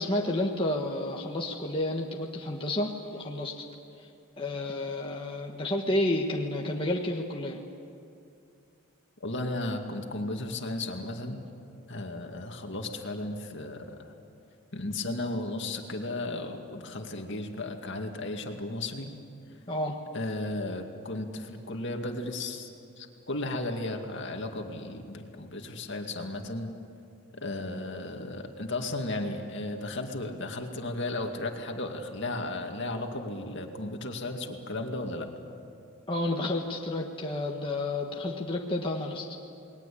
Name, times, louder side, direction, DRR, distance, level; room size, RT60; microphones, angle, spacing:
voice 1, 0.0-3.6 4.0-4.1 4.4-7.6 19.7-20.0 36.1-39.3, left 1 dB, 25° left, -1 dB, 1.6 m, -30 dB
voice 2, 9.2-11.4 11.9-14.1 14.7-19.1 20.1-22.7 23.0-26.7 27.3-35.3, left 2 dB, 55° left, 3 dB, 2.3 m, -35 dB
29.0 x 21.0 x 8.6 m, 2.5 s
head